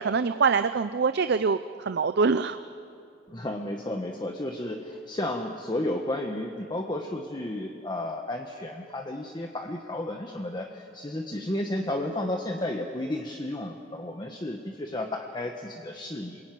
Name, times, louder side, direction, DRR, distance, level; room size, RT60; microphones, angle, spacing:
voice 1, 0.0-1.6 1.9-2.6, right 5 dB, 60° right, 11 dB, 0.6 m, -24 dB
voice 2, 3.3-16.4, left 1 dB, 25° left, 3 dB, 1.3 m, -32 dB
27.5 x 22.0 x 9.3 m, 2.6 s
head